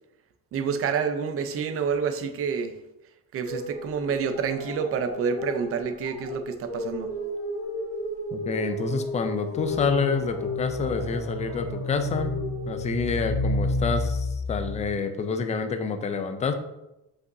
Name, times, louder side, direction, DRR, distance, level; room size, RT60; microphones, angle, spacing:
voice 1, 0.5-2.7 3.3-7.1, right 6 dB, 35° right, 9 dB, 0.6 m, -28 dB
sound 1, 3.4-12.7, equal, 35° left, 1.7 m, -35 dB
voice 2, 8.3-12.4 12.7-16.5, left 5 dB, 20° left, 7 dB, 0.3 m, -28 dB
sound 2, 9.5-14.9, left 2 dB, 65° left, 1.8 m, -30 dB
7.9 x 5.6 x 2.6 m, 0.91 s
cardioid pair, 170°, 39 cm